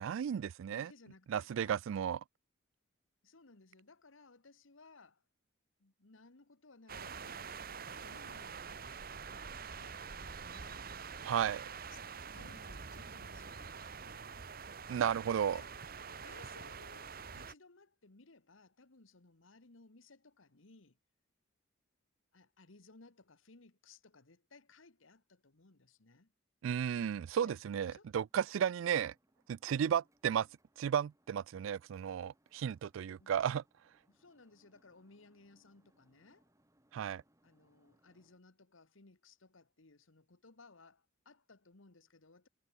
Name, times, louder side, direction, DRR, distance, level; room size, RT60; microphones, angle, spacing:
voice 1, 0.0-0.9 1.3-2.2 11.2-11.6 14.9-15.6 26.6-29.1 29.5-30.5 30.8-33.6 36.9-37.2, right 8 dB, 75° right, 0.3 m, -34 dB
voice 2, 0.7-1.8 3.2-5.2 5.8-10.9 11.9-12.0 12.3-14.6 15.4-15.8 16.1-21.0 22.3-26.3 27.4-27.6 27.9-28.1 29.7-30.0 33.2-33.3 34.1-36.5 37.4-42.5, left 3 dB, 75° left, 1.5 m, -61 dB
sound 1, 6.9-17.5, right 5 dB, 45° right, 1.1 m, -46 dB
sound 2, 28.2-38.4, right 1 dB, 15° right, 5.5 m, -74 dB
head